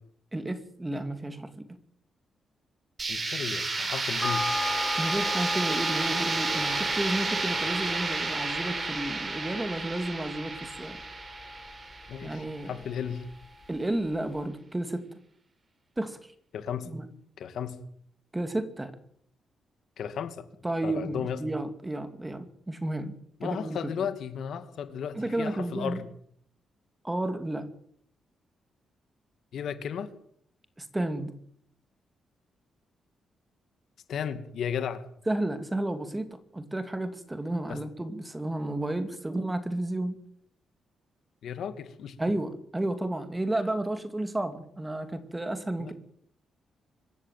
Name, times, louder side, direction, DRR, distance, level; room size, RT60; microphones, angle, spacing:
voice 1, 0.3-1.7 5.0-11.0 12.2-12.8 13.7-15.1 16.0-16.2 16.9-17.1 18.3-19.0 20.6-23.9 25.1-26.0 27.0-27.7 30.8-31.3 35.3-40.2 42.2-45.9, right 1 dB, 10° right, 9 dB, 2.5 m, -32 dB
sound 1, 3.0-12.8, right 3 dB, 30° right, 4.3 m, -31 dB
voice 2, 3.1-4.6 12.1-13.3 16.5-16.9 17.4-17.8 20.0-20.5 20.8-21.4 23.4-26.0 29.5-30.1 34.1-35.0 37.7-37.8 41.4-42.2 45.8-45.9, left 8 dB, 70° left, 10 dB, 2.4 m, -34 dB
sound 2, 4.2-13.0 13.3-13.4, left 2 dB, 10° left, 5.7 m, -37 dB
25.0 x 14.5 x 9.1 m, 0.64 s
cardioid pair, 135°, 0 cm